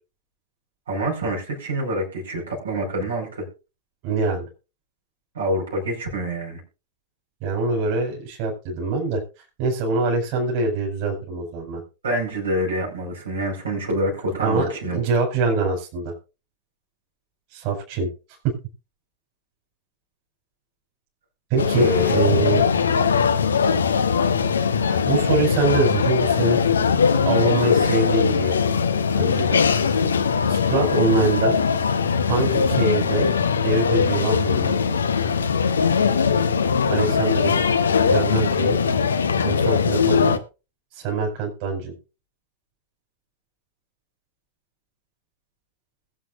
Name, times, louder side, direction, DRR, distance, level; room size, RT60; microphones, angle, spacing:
voice 1, 0.9-3.5 5.4-6.6 12.0-15.0 21.8-22.2 30.7-31.0, equal, 70° right, 0 dB, 5.1 m, -26 dB
voice 2, 4.0-4.5 7.4-9.2 9.6-11.8 14.4-16.1 17.5-18.1 21.5-22.6 24.8-26.6 27.2-28.6 29.1-29.6 30.5-31.6 32.2-33.3 33.6-34.7 36.9-37.6 38.0-38.8 39.4-40.3 40.9-41.9, right 3 dB, 45° right, 0 dB, 4.9 m, -24 dB
sound 1, 21.6-40.4, left 6 dB, 70° left, 1.1 m, -20 dB
21.5 x 7.9 x 2.6 m, 0.30 s
figure-of-eight pair, 90°, 0 cm